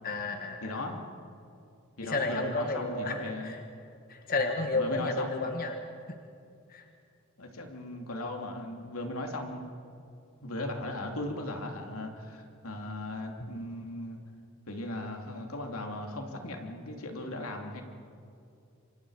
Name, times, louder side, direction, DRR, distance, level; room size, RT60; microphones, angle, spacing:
voice 1, 0.0-0.8 2.0-3.6 4.1-5.7 6.7-6.8, left 3 dB, 40° left, 4 dB, 1.4 m, -32 dB
voice 2, 0.6-1.0 2.0-3.6 4.7-5.5 7.4-9.8 10.4-14.2 14.7-17.8, left 1 dB, 80° left, 3 dB, 3.0 m, -37 dB
27.5 x 25.0 x 5.0 m, 2.5 s
head